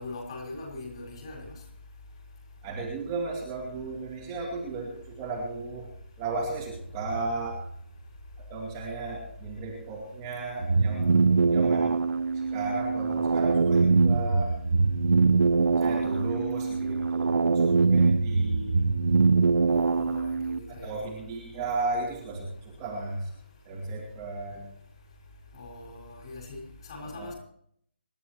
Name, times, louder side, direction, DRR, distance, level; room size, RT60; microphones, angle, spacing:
voice 1, 0.0-1.5 15.9-16.3 19.7-20.9 25.5-26.6 26.9-27.3, left 2 dB, 30° left, 5.9 m, -41 dB
voice 2, 2.6-7.7 8.4-12.1 12.5-14.6 15.8-18.8 20.7-23.3 23.7-24.7 27.0-27.3, right 3 dB, 15° right, 2.5 m, -35 dB
sound 1, 10.6-20.6, right 4 dB, 75° right, 0.9 m, -23 dB
27.0 x 11.5 x 3.1 m
hypercardioid pair, 180°, 6 cm